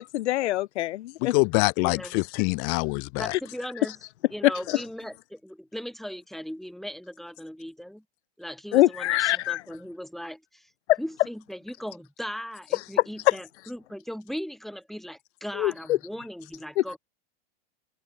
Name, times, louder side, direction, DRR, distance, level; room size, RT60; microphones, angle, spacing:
voice 1, 0.0-1.3 3.3-3.4 4.4-4.8 8.7-9.6 10.9-11.0 13.3-13.4 15.5-16.0 16.8-17.0, left 15 dB, 80° left, 1.4 m, -23 dB
voice 2, 1.2-3.4, left 40 dB or more, 40° left, 0.6 m, -25 dB
voice 3, 1.8-2.2 3.2-4.0 4.3-8.0 8.4-10.7 11.0-17.0, equal, ahead, 6.7 m, -38 dB
open air
supercardioid pair, 135°, 34 cm